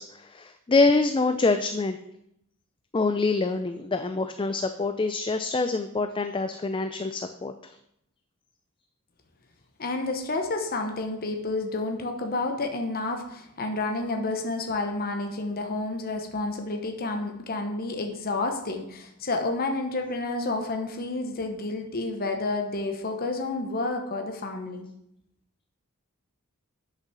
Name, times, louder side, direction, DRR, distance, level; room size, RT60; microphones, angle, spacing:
voice 1, 0.0-2.0 2.9-7.7, left 3 dB, 25° left, 9 dB, 0.4 m, -25 dB
voice 2, 9.8-24.9, left 2 dB, 45° left, 4 dB, 1.0 m, -30 dB
8.3 x 6.8 x 6.1 m, 0.78 s
head